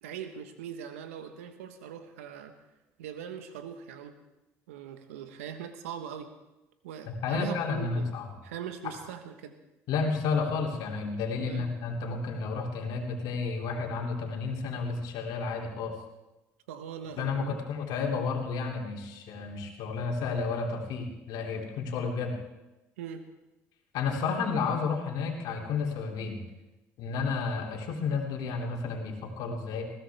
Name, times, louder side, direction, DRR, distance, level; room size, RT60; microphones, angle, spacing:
voice 1, 0.0-2.5 3.0-4.1 4.7-6.3 6.8-8.1 8.4-9.6 11.5-11.7 16.7-17.6 23.0-23.2, right 8 dB, 90° right, 8 dB, 1.3 m, -41 dB
voice 2, 7.2-8.3 8.8-8.9 9.9-16.0 17.2-22.4 23.9-26.4 27.0-29.8, left 4 dB, 70° left, 1 dB, 2.9 m, -31 dB
20.5 x 16.0 x 3.5 m, 1.0 s
hypercardioid pair, 65°, 7 cm